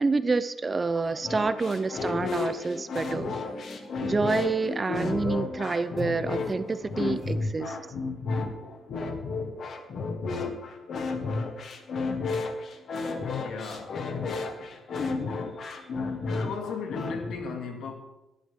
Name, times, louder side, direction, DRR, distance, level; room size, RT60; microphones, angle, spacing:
voice 1, 0.0-3.4 4.0-7.8, right 3 dB, 20° right, 0.5 m, -27 dB
sound 1, 0.8-7.4, left 1 dB, 15° left, 1.0 m, -43 dB
sound 2, 1.2-17.3, left 4 dB, 50° left, 1.5 m, -32 dB
voice 2, 13.4-14.8 16.4-17.9, left 5 dB, 80° left, 2.3 m, -37 dB
18.5 x 11.5 x 3.7 m
cardioid pair, 160°, 0 cm